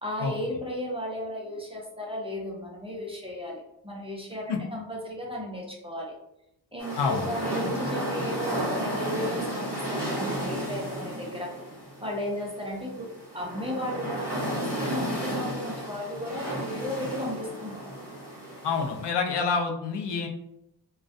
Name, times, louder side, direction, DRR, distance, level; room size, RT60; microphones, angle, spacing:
voice 1, 0.0-6.1 6.7-11.5 12.0-17.8, left 1 dB, 15° right, -4 dB, 0.4 m, -35 dB
sound 1, 6.8-19.0, right 1 dB, 5° left, 1.0 m, -33 dB
voice 2, 7.0-7.3 18.6-20.3, left 5 dB, 75° left, 2 dB, 0.5 m, -27 dB
2.2 x 2.2 x 2.5 m, 0.82 s
wide cardioid pair, 160°, 42 cm